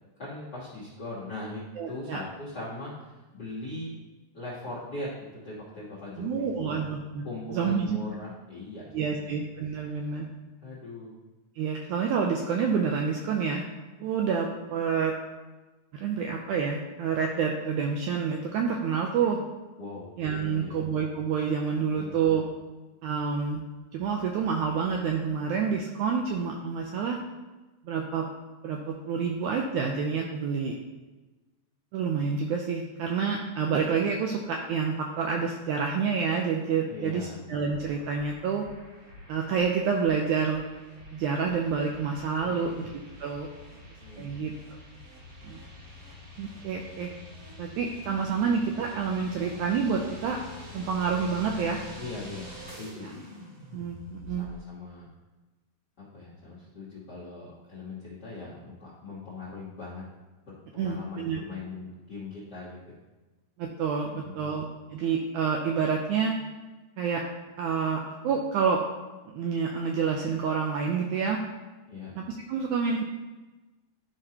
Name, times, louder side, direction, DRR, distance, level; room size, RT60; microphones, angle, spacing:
voice 1, 0.2-4.0 4.3-6.8 7.2-9.4 10.6-11.1 19.8-20.1 20.3-20.9 21.9-22.1 36.9-37.4 42.4-42.8 44.0-44.3 52.0-53.2 54.3-55.1 56.0-60.0 60.5-62.9 64.0-64.5 71.9-72.1, left 2 dB, 60° left, -7 dB, 1.0 m, -40 dB
voice 2, 1.8-2.2 6.2-7.2 7.5-8.0 8.9-10.3 11.6-13.6 14.0-15.1 15.9-19.4 20.2-22.4 23.0-23.6 23.9-27.2 27.8-28.3 28.6-30.8 31.9-38.7 39.3-40.6 41.1-42.9 43.2-43.5 44.2-44.5 45.4-45.6 46.4-47.1 47.6-50.4 50.7-51.8 53.7-54.5 60.8-61.4 63.6-64.7 64.9-66.4 67.0-67.2 67.6-68.8 69.3-71.4 72.2-73.0, right 6 dB, 85° right, 1 dB, 1.7 m, -28 dB
sound 1, 37.7-54.6, left 2 dB, 45° right, 1.9 m, -46 dB
12.0 x 5.0 x 2.8 m, 1.2 s
omnidirectional pair, 4.0 m